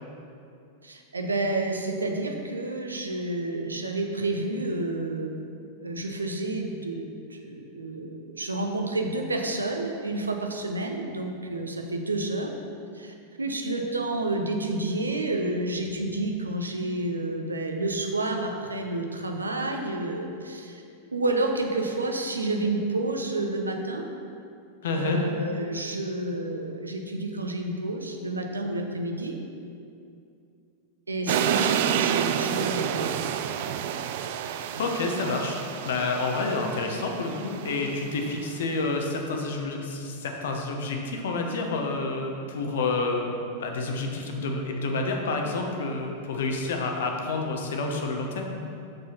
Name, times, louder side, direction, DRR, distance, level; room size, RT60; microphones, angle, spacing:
voice 1, 0.8-5.3 5.8-12.5 12.9-20.8 21.1-24.0 24.9-29.4 31.1-33.2 34.7-34.8, right 2 dB, 80° right, 3 dB, 0.8 m, -30 dB
voice 2, 24.8-25.2 34.8-43.3 43.6-48.6, left 3 dB, 60° left, 2 dB, 1.1 m, -29 dB
sound 1, 31.3-38.4, right 9 dB, 50° right, 0.4 m, -29 dB
6.8 x 6.5 x 5.7 m, 2.5 s
figure-of-eight pair, 90°, 0 cm